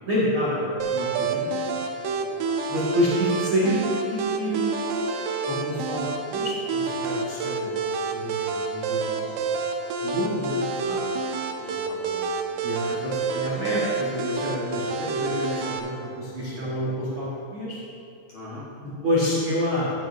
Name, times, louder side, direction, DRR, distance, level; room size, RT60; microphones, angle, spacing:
voice 1, 0.0-1.6 2.7-3.8 4.1-5.1 5.5-7.6 8.1-9.3 10.0-11.1 12.6-17.8 18.8-19.9, equal, 65° right, -10 dB, 1.2 m, -28 dB
sound 1, 0.8-15.8, right 4 dB, 80° right, 2.5 m, -28 dB
voice 2, 2.2-2.6 7.5-7.8 11.6-12.5 16.5-16.9 18.3-18.7, left 2 dB, 65° left, -8 dB, 2.1 m, -43 dB
13.5 x 9.5 x 2.7 m, 2.7 s
omnidirectional pair, 5.4 m